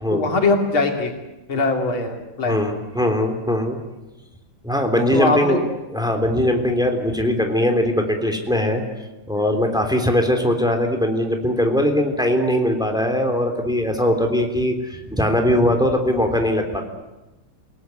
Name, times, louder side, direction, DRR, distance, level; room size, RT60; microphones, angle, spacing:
voice 1, 0.1-1.1 1.5-2.6 4.9-5.6, left 3 dB, 70° left, 3 dB, 3.6 m, -21 dB
voice 2, 2.4-3.8 4.6-5.6 5.9-8.8 9.3-16.8, left 1 dB, ahead, 4 dB, 3.2 m, -20 dB
28.0 x 19.0 x 9.6 m, 1.1 s
omnidirectional pair, 2.3 m